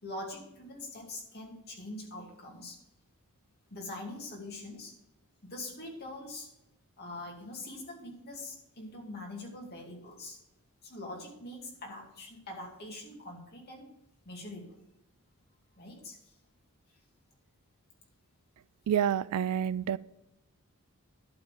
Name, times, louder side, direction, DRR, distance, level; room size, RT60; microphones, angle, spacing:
voice 1, 0.0-2.8 3.7-4.9 5.4-6.5 7.0-10.4 10.8-13.9 14.2-14.8 15.8-16.3, left 2 dB, 45° left, 0 dB, 2.3 m, -43 dB
voice 2, 18.9-20.0, right 9 dB, 85° right, 20 dB, 0.3 m, -28 dB
11.5 x 4.0 x 7.4 m, 0.85 s
head